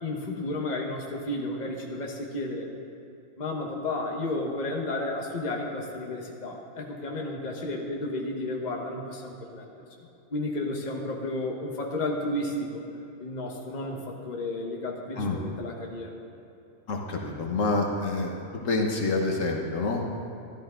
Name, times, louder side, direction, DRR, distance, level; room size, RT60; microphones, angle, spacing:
voice 1, 0.0-2.7 3.4-9.7 10.3-12.8 13.2-16.1, left 2 dB, 35° left, 0 dB, 1.2 m, -32 dB
voice 2, 16.9-18.4 18.6-20.1, left 3 dB, 75° left, 1 dB, 1.5 m, -27 dB
13.0 x 12.0 x 3.8 m, 2.7 s
omnidirectional pair, 1.4 m